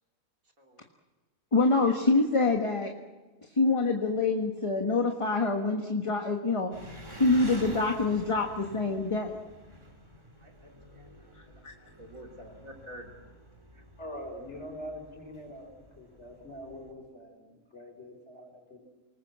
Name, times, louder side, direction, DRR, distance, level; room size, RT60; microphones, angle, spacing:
voice 1, 1.5-2.9 3.5-9.4 11.3-11.7, left 3 dB, 20° left, 3 dB, 1.4 m, -26 dB
Engine, 6.7-16.9, equal, 15° right, 3.2 m, -48 dB
voice 2, 10.4-13.1 13.7-13.8, equal, 55° right, 2 dB, 3.4 m, -50 dB
voice 3, 14.0-15.7 16.0-18.8, equal, 45° left, 3 dB, 5.5 m, -43 dB
28.5 x 20.0 x 7.5 m, 1.3 s
omnidirectional pair, 1.7 m